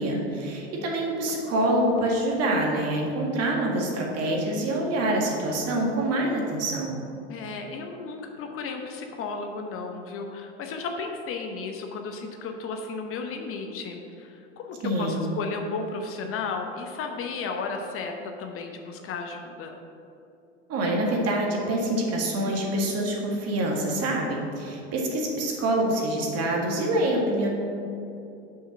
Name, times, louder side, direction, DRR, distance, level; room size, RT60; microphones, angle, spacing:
voice 1, 0.0-7.0 14.8-15.2 20.7-27.5, right 1 dB, 40° right, 0 dB, 1.9 m, -26 dB
voice 2, 7.3-19.7, left 4 dB, 35° left, 4 dB, 0.9 m, -34 dB
6.4 x 5.6 x 5.9 m, 2.7 s
hypercardioid pair, 90°, 37 cm